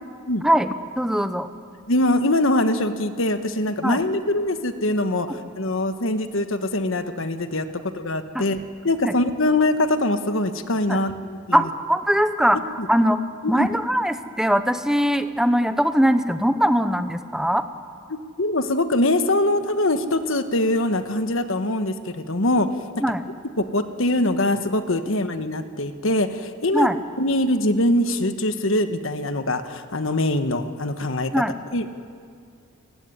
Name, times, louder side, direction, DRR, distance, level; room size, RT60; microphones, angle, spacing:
voice 1, 0.4-1.5 3.8-4.0 8.3-8.4 9.0-9.2 10.9-11.0 11.5-13.2 13.5-17.6 23.0-23.2 26.7-27.0 31.3-31.5, equal, 5° right, 10 dB, 0.8 m, -21 dB
voice 2, 1.9-11.7 12.5-12.9 13.4-13.7 18.1-22.7 23.6-26.9 27.2-31.3 31.7-32.0, left 1 dB, 65° left, 9 dB, 1.4 m, -23 dB
27.5 x 16.0 x 9.7 m, 2.3 s
head